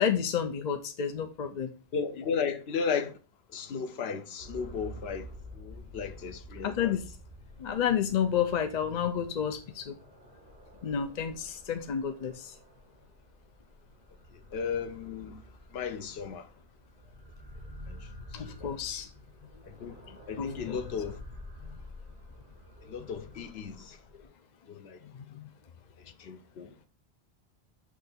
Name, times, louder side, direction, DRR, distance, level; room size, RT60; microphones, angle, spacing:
voice 1, 0.0-1.7 6.6-7.1 7.6-9.9 10.8-12.5 18.3-19.1 20.4-20.8 25.1-25.5, left 8 dB, 50° left, 0.6 m, -30 dB
voice 2, 1.9-3.2 3.5-5.3 5.5-6.9 14.3-15.4 15.7-16.5 17.9-18.1 18.6-18.7 19.7-20.0 20.3-21.2 22.9-24.0 24.7-25.0 26.2-26.7, left 6 dB, 75° left, 1.0 m, -35 dB
sound 1, 4.4-24.2, equal, 55° right, 2.7 m, -49 dB
6.3 x 3.3 x 5.2 m
omnidirectional pair, 1.1 m